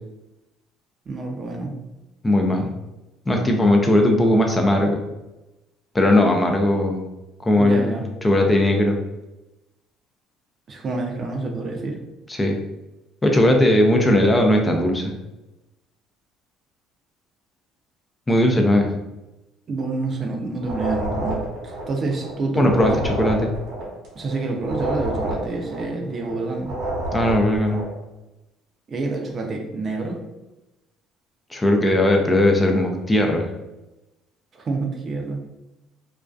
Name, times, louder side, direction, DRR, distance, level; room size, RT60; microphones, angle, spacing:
voice 1, 1.1-1.7 7.6-8.0 10.7-12.0 19.7-22.9 24.2-26.7 28.9-30.2 34.5-35.4, right 3 dB, 45° right, 2 dB, 0.5 m, -27 dB
voice 2, 2.2-2.7 3.3-5.0 5.9-7.0 7.4-8.0 8.2-9.0 12.3-12.6 13.2-15.1 18.3-18.9 22.6-23.5 27.1-27.9 31.5-33.5, left 1 dB, 15° left, 2 dB, 0.4 m, -18 dB
sound 1, 20.6-27.9, right 1 dB, 70° right, 0.8 m, -29 dB
2.5 x 2.2 x 2.2 m, 0.99 s
supercardioid pair, 90°, 0 cm